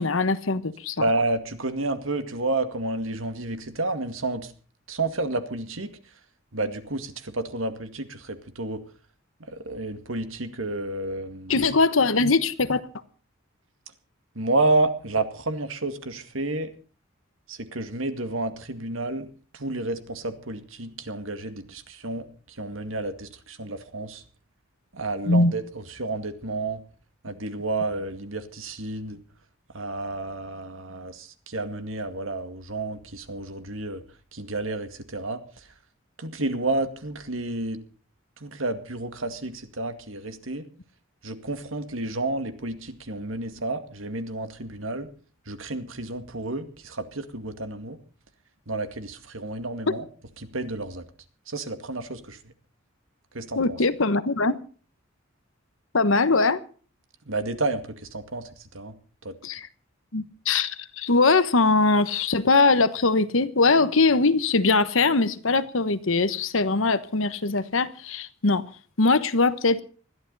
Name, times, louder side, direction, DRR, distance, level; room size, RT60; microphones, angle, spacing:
voice 1, 0.0-1.0 11.5-12.8 25.3-25.5 53.6-54.6 55.9-56.6 59.4-59.7 60.1-68.6 69.0-69.8, left 3 dB, 70° left, 1.2 m, -21 dB
voice 2, 1.0-4.5 4.9-5.9 6.5-8.8 9.5-11.6 14.4-16.7 17.5-19.3 19.5-24.2 24.9-26.8 27.2-29.2 29.7-34.0 34.3-35.7 36.2-37.8 38.4-40.6 41.2-45.1 45.5-48.0 48.7-50.1 50.4-51.1 51.5-52.4 53.3-53.8 57.3-57.8 58.1-58.5 58.7-58.9 59.2-59.3, right 2 dB, 75° right, 2.1 m, -30 dB
21.0 x 14.0 x 4.1 m
head